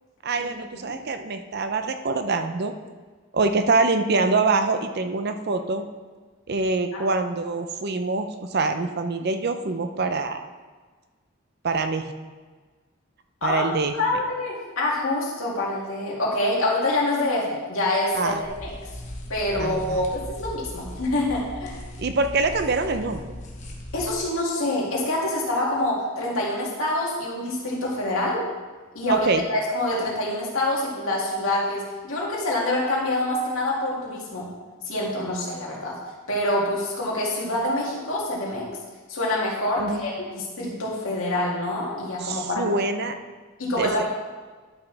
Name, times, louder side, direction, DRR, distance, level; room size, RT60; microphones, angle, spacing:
voice 1, 0.2-2.7 3.3-5.8 6.5-10.4 11.6-12.1 13.4-14.0 18.1-18.4 19.6-20.1 22.0-23.2 29.1-29.4 39.8-40.0 42.2-43.2 43.8-44.0, right 3 dB, 50° right, 8 dB, 0.6 m, -25 dB
voice 2, 14.0-18.7 19.3-21.8 23.9-28.4 28.9-34.5 34.8-36.0 36.3-38.7 39.1-42.7 43.6-44.0, left 1 dB, 85° left, -4 dB, 2.4 m, -26 dB
sound 1, 18.4-24.2, left 1 dB, 35° left, 1.1 m, -38 dB
11.5 x 6.0 x 3.4 m, 1.4 s
head